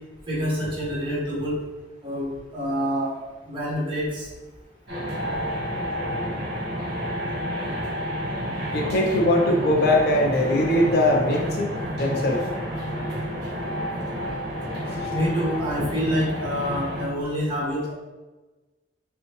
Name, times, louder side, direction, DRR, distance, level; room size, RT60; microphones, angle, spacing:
voice 1, 0.3-1.6 2.0-3.1 3.5-4.3 15.1-17.9, equal, 30° right, -7 dB, 1.4 m, -27 dB
sound 1, 4.9-17.1, equal, 60° right, 1.3 m, -30 dB
voice 2, 8.7-12.4 14.9-15.1, left 1 dB, 60° left, 0 dB, 0.6 m, -21 dB
5.4 x 2.2 x 3.1 m, 1.2 s
head